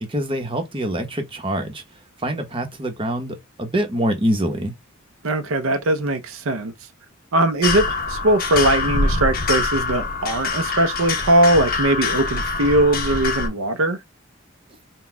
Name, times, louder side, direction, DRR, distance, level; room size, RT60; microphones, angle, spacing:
voice 1, 0.0-1.8 2.2-4.7, right 1 dB, 25° right, 1.0 m, -25 dB
voice 2, 5.2-6.7 7.3-14.0, right 1 dB, 70° right, 0.6 m, -20 dB
sound 1, 7.6-13.5, left 3 dB, 45° left, 0.9 m, -24 dB
4.0 x 2.2 x 4.4 m
head